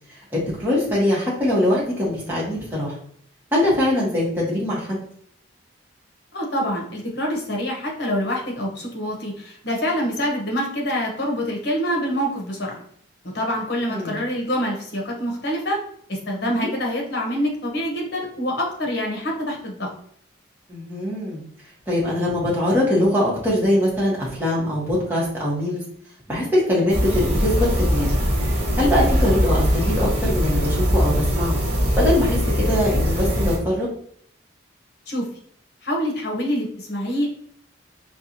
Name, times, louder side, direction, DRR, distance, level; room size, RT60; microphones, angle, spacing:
voice 1, 0.1-3.0 3.5-5.0 13.9-14.2 16.5-16.7 20.7-21.4 21.9-25.8 26.3-28.1 28.8-31.6 32.0-33.9, left 1 dB, 10° right, -7 dB, 1.2 m, -22 dB
voice 2, 6.3-12.8 13.2-15.8 16.1-19.9 35.1-35.2 35.8-37.3, equal, 55° left, -1 dB, 1.0 m, -26 dB
sound 1, 26.9-33.6, equal, 30° right, 1.1 m, -21 dB
4.5 x 2.4 x 2.7 m, 0.63 s
head